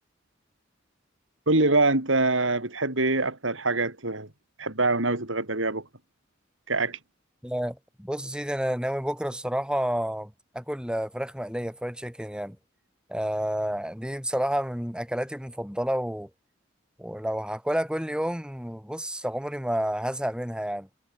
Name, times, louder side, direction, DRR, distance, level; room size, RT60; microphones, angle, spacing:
voice 1, 1.5-4.3 4.6-5.9 6.7-7.0, right 2 dB, 75° right, 4.6 m, -24 dB
voice 2, 7.4-12.6 13.1-16.3 17.0-20.9, equal, 5° right, 6.0 m, -30 dB
head